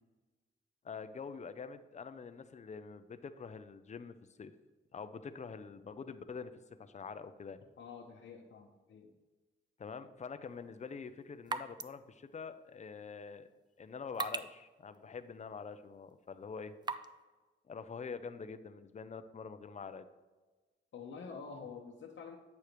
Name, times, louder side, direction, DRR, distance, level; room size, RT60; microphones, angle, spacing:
voice 1, 0.8-4.5 4.9-6.5 6.8-7.6 9.8-13.5 13.8-16.7 17.7-20.1, left 5 dB, 35° left, 11 dB, 0.5 m, -45 dB
voice 2, 7.8-9.1 20.9-22.4, left 5 dB, 75° left, -1 dB, 0.9 m, -48 dB
sound 1, 10.4-17.2, right 4 dB, 20° right, 0.3 m, -46 dB
8.3 x 6.6 x 3.0 m, 1.3 s
wide cardioid pair, 120°, 20 cm